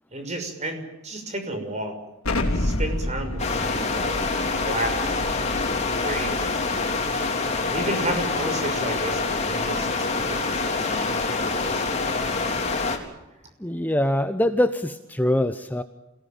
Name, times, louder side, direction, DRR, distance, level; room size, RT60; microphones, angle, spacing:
voice 1, 0.1-2.0 2.5-4.2 4.6-5.2 5.9-6.8 7.7-12.4, right 1 dB, 30° right, 5 dB, 6.0 m, -32 dB
Explosion, 2.2-6.9, left 1 dB, 85° left, 3.4 m, -30 dB
sound 1, 3.4-13.0, left 3 dB, 30° left, 3.8 m, -26 dB
voice 2, 13.6-15.8, left 1 dB, 10° left, 9 dB, 0.8 m, -23 dB
27.5 x 18.5 x 9.2 m, 0.94 s
head